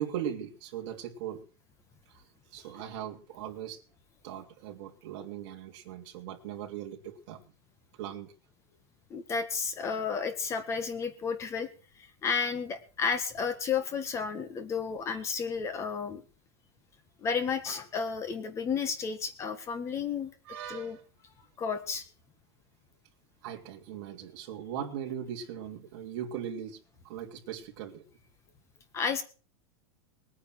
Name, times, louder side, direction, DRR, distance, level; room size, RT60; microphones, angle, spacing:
voice 1, 0.0-1.5 2.1-2.2 2.5-3.8 4.2-7.4 8.0-8.3 20.4-21.0 23.4-28.0, right 9 dB, 45° right, 2 dB, 3.1 m, -39 dB
voice 2, 9.1-11.7 12.0-16.2 17.2-20.3 20.7-21.0 21.6-22.0 28.9-29.2, left 6 dB, 20° left, 12 dB, 1.6 m, -32 dB
20.0 x 9.7 x 6.3 m, 0.37 s
supercardioid pair, 165°, 15 cm